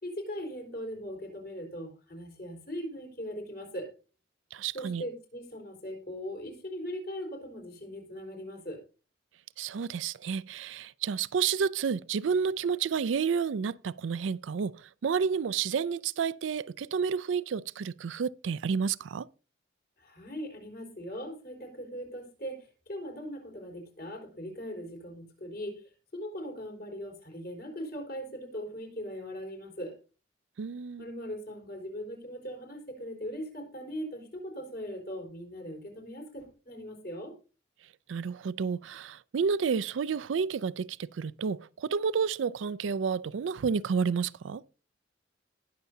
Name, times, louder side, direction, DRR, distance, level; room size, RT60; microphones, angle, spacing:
voice 1, 0.0-3.9 4.7-8.8 20.0-30.0 31.0-37.3, equal, 55° left, 4.5 m, -40 dB
voice 2, 4.5-5.0 9.6-19.3 30.6-31.1 38.1-44.6, right 6 dB, 90° right, 0.4 m, -30 dB
20.0 x 6.8 x 2.7 m
head